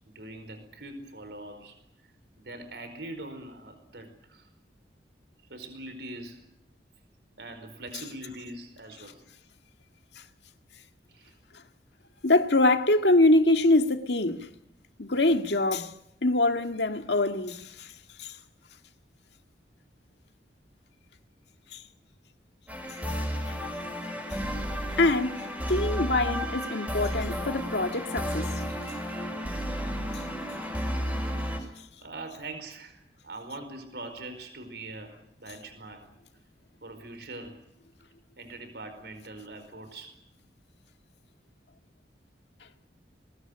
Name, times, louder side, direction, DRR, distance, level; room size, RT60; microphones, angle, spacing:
voice 1, 0.1-1.8 2.4-4.5 5.5-6.4 7.4-9.2 11.1-11.3 24.2-24.3 26.0-26.1 30.5-31.5 32.0-36.1 36.8-37.6 38.4-40.1, right 2 dB, 70° right, 4.8 m, -43 dB
voice 2, 12.2-14.5 15.0-15.9 16.2-17.9 18.2-18.4 21.7-21.8 23.5-23.6 25.0-25.4 25.7-28.5, left 2 dB, 75° left, 1.9 m, -24 dB
sound 1, 22.7-31.6, equal, 10° right, 6.5 m, -32 dB
22.5 x 20.5 x 10.0 m
head